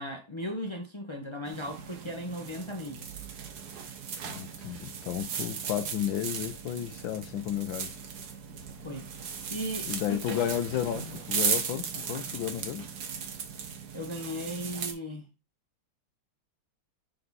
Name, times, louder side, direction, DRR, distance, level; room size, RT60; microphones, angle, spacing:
voice 1, 0.0-3.0 8.8-9.0 9.5-10.4 13.9-15.3, equal, 30° left, 0.5 m, -36 dB
sound 1, 1.5-14.9, right 6 dB, 60° right, 1.4 m, -37 dB
voice 2, 4.3-7.9 9.9-12.8, left 11 dB, 75° left, 1.5 m, -32 dB
6.7 x 4.3 x 4.0 m
omnidirectional pair, 2.2 m